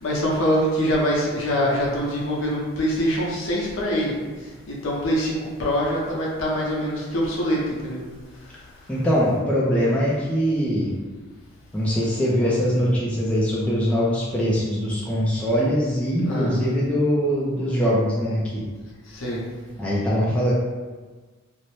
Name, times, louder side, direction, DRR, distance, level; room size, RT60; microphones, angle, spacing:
voice 1, 0.0-4.1 4.7-8.0 15.5-15.6 16.3-16.6 19.1-19.4, equal, 65° left, -4 dB, 0.7 m, -24 dB
voice 2, 8.9-10.9 11.7-18.6 19.8-20.5, equal, 5° left, -7 dB, 0.3 m, -22 dB
2.6 x 2.0 x 3.1 m, 1.4 s
head